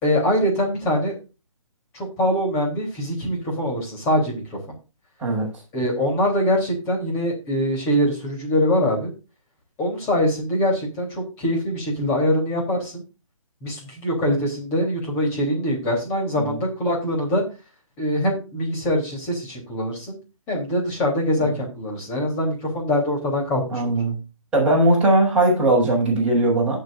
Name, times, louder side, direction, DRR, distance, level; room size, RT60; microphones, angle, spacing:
voice 1, 0.0-1.1 1.9-4.6 5.7-9.1 9.8-13.0 13.6-17.4 18.0-20.2 20.5-23.9, equal, 15° left, -1 dB, 3.5 m, -23 dB
voice 2, 23.7-24.1 24.5-26.8, right 2 dB, 5° right, -8 dB, 6.0 m, -19 dB
18.0 x 6.6 x 2.6 m, 0.30 s
hypercardioid pair, 165°, 18 cm